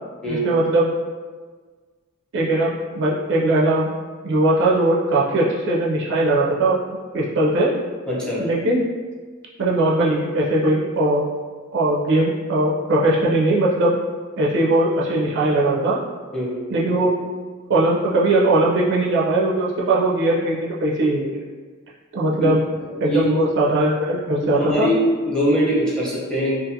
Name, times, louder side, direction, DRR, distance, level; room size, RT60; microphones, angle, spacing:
voice 1, 0.3-0.9 2.3-3.9 4.2-6.8 7.1-7.7 8.4-8.8 9.6-11.2 11.7-13.9 14.4-16.0 16.7-17.2 17.7-21.4 22.1-22.6 23.0-24.9, right 2 dB, 55° right, -5 dB, 0.4 m, -19 dB
voice 2, 8.1-8.4 16.3-16.5 22.2-22.5 22.9-23.5 24.4-26.5, equal, 5° left, -8 dB, 0.7 m, -22 dB
2.6 x 2.4 x 2.6 m, 1.5 s
head